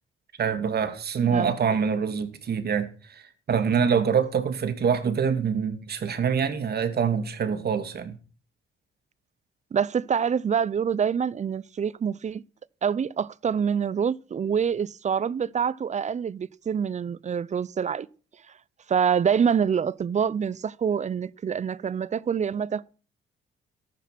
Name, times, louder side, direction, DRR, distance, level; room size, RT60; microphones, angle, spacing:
voice 1, 0.4-2.9 3.5-8.2, right 6 dB, 55° right, 2.6 m, -25 dB
voice 2, 9.7-12.4 12.8-18.1 18.9-22.9, right 7 dB, 35° right, 0.6 m, -26 dB
14.0 x 12.0 x 6.1 m
cardioid pair, 90°, 20 cm